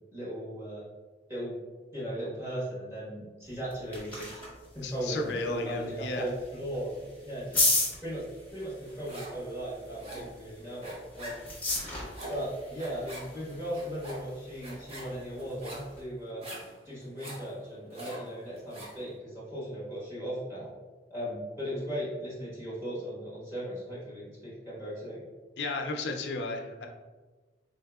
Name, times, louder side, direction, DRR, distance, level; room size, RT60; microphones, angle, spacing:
voice 1, 0.1-0.8 1.3-1.6 1.9-4.3 4.7-7.6 8.0-8.2 8.5-11.5 12.3-16.4 16.8-20.7 21.1-25.2, equal, 15° right, -9 dB, 1.2 m, -37 dB
sound 1, 3.5-16.0, left 2 dB, 10° left, 0.9 m, -36 dB
voice 2, 4.8-6.3 25.6-26.9, left 3 dB, 70° left, 3 dB, 0.4 m, -34 dB
sound 2, 8.6-9.5 9.7-19.0, right 1 dB, 35° right, 0.7 m, -44 dB
3.8 x 2.7 x 2.3 m, 1.3 s
head